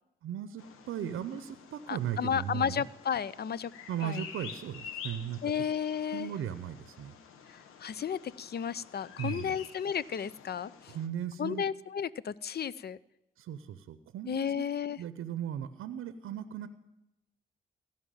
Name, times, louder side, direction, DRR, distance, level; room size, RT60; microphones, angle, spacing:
voice 1, 0.2-2.8 3.9-5.4 6.1-7.1 9.2-9.6 10.9-11.6 13.4-14.6 15.0-16.7, right 10 dB, 75° right, 13 dB, 0.7 m, -37 dB
Bird vocalization bird call bird song, 0.6-11.1, left 7 dB, 85° left, 1.0 m, -49 dB
voice 2, 1.9-3.7 4.0-4.2 5.4-6.3 7.5-11.0 11.4-13.0 14.3-15.0, left 8 dB, 50° left, 20 dB, 0.5 m, -33 dB
16.0 x 5.8 x 8.9 m, 0.89 s
supercardioid pair, 40°, 21 cm